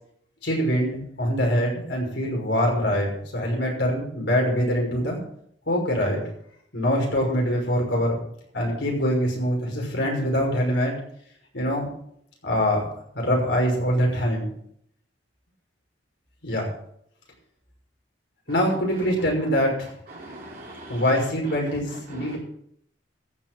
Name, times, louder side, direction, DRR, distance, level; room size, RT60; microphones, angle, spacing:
voice 1, 0.4-5.2 5.7-6.2 6.7-8.2 8.5-10.9 11.5-11.9 12.4-12.8 13.1-14.5 16.4-16.7 18.5-19.9 20.9-22.4, equal, 70° left, -1 dB, 5.9 m, -24 dB
voice 2, 20.1-21.0 22.1-22.4, right 1 dB, 50° right, -4 dB, 3.1 m, -41 dB
14.5 x 6.7 x 7.7 m, 0.68 s
head